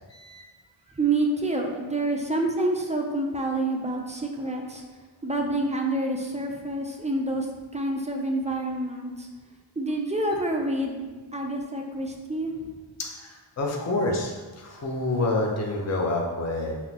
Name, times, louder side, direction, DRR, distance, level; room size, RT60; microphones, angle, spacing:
voice 1, 0.1-0.4 13.0-16.8, left 2 dB, 35° left, 0 dB, 0.6 m, -28 dB
voice 2, 1.0-4.8 5.2-7.5 7.7-9.3 9.8-11.0 11.3-12.7, right 2 dB, 15° right, 1 dB, 0.4 m, -27 dB
5.7 x 2.0 x 2.8 m, 1.4 s
wide cardioid pair, 50°, 49 cm